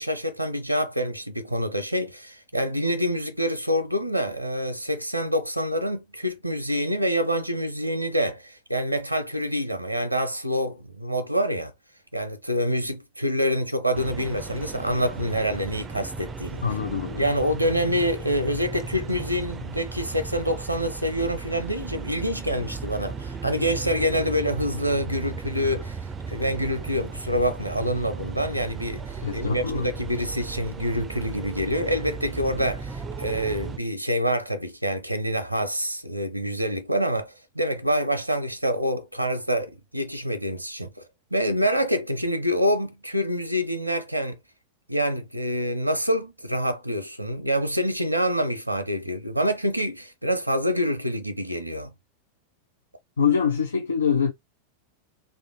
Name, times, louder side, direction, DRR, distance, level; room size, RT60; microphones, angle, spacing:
voice 1, 0.0-11.7 12.1-16.6 17.2-26.0 26.3-41.0 41.3-44.4 44.9-51.9, equal, 90° right, 0.6 m, -26 dB
sound 1, 13.9-33.8, right 4 dB, 20° right, 0.4 m, -36 dB
voice 2, 16.6-17.2 29.2-29.9 53.2-54.3, left 7 dB, 70° left, 0.5 m, -24 dB
3.4 x 2.6 x 3.6 m
figure-of-eight pair, 90°, 0 cm